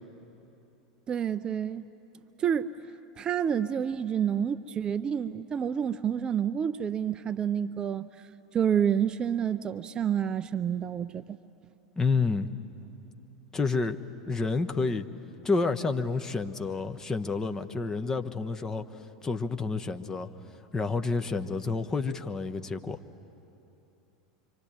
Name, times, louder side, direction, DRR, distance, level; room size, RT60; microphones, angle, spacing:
voice 1, 1.1-1.8 2.4-2.7 3.2-8.1 8.5-11.4, right 8 dB, 25° right, 13 dB, 0.5 m, -28 dB
voice 2, 12.0-12.5 13.5-14.0 14.3-15.1 15.4-18.8 19.2-20.3 20.7-23.0, left 4 dB, 20° left, 7 dB, 1.1 m, -29 dB
25.5 x 25.5 x 9.0 m, 3.0 s
figure-of-eight pair, 80°, 3 cm